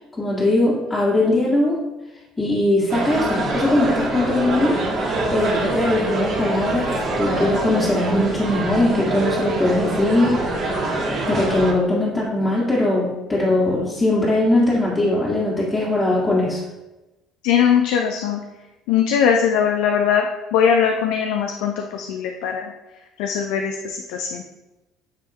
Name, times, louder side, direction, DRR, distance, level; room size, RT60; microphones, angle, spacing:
voice 1, 0.1-1.8 2.4-4.8 5.3-10.5 11.3-16.6, left 1 dB, 20° left, -7 dB, 1.8 m, -20 dB
sound 1, 2.9-11.7, right 2 dB, 50° right, 1.5 m, -24 dB
voice 2, 17.4-18.4 18.9-20.3 20.5-22.7 23.2-24.4, left 7 dB, 75° left, 3 dB, 0.6 m, -20 dB
9.3 x 3.4 x 2.9 m, 1.0 s
hypercardioid pair, 70°, 0 cm